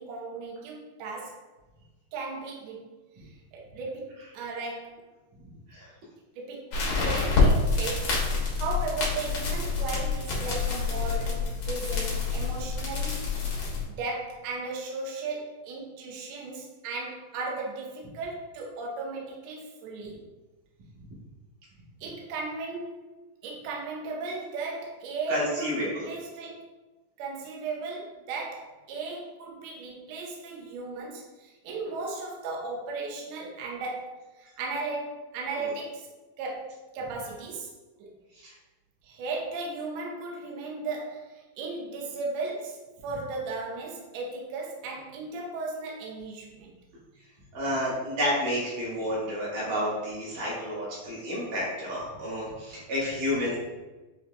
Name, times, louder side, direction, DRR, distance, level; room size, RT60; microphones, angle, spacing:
voice 1, 0.0-1.4 2.1-5.0 6.3-8.2 8.5-13.4 13.8-20.2 22.0-23.0 23.4-26.7 27.2-36.1 36.4-37.7 38.0-38.1 39.0-46.7, right 3 dB, 85° right, -2 dB, 1.5 m, -36 dB
sound 1, 6.7-13.8, left 4 dB, 90° left, 1.1 m, -27 dB
voice 2, 25.3-26.1 35.6-35.7 38.4-38.5 47.5-53.6, equal, 70° right, -7 dB, 2.9 m, -30 dB
7.0 x 2.7 x 2.3 m, 1.2 s
omnidirectional pair, 4.1 m